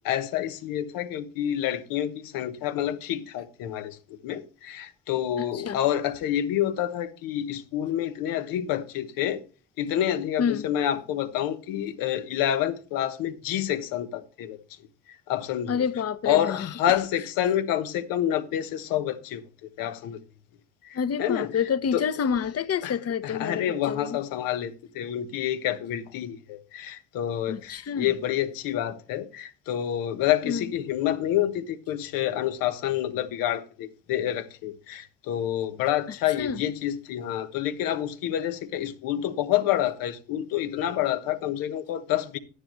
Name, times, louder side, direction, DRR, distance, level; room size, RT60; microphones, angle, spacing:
voice 1, 0.0-9.4 9.8-14.6 15.3-15.8 16.2-19.4 19.8-20.2 20.8-21.5 21.9-22.0 22.8-22.9 23.2-42.4, left 11 dB, 90° left, 1.2 m, -28 dB
voice 2, 5.4-5.8 10.4-10.7 15.7-17.0 20.9-24.2 27.5-28.1 30.4-30.7 36.4-36.6, left 7 dB, 45° left, 1.0 m, -28 dB
11.0 x 9.7 x 3.1 m
supercardioid pair, 70°, 33 cm